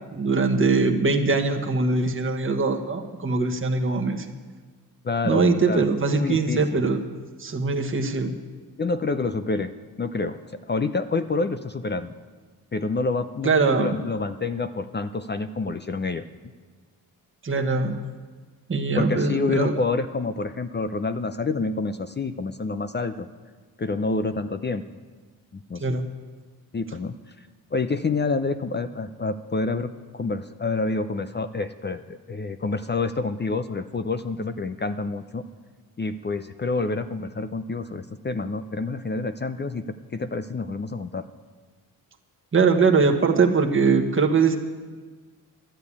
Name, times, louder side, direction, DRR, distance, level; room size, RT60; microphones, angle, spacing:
voice 1, 0.1-4.3 5.2-7.0 7.4-8.3 13.4-13.9 17.4-18.0 18.7-19.8 25.8-26.1 42.5-44.6, right 4 dB, 30° right, 3 dB, 1.3 m, -22 dB
voice 2, 5.0-5.9 6.2-6.8 8.8-10.4 10.7-12.1 12.7-16.2 19.0-23.3 23.8-24.8 25.5-26.0 26.7-27.1 27.7-35.4 36.0-41.2, left 3 dB, 30° left, 10 dB, 0.6 m, -28 dB
11.5 x 9.0 x 8.4 m, 1.5 s
cardioid pair, 75°, 38 cm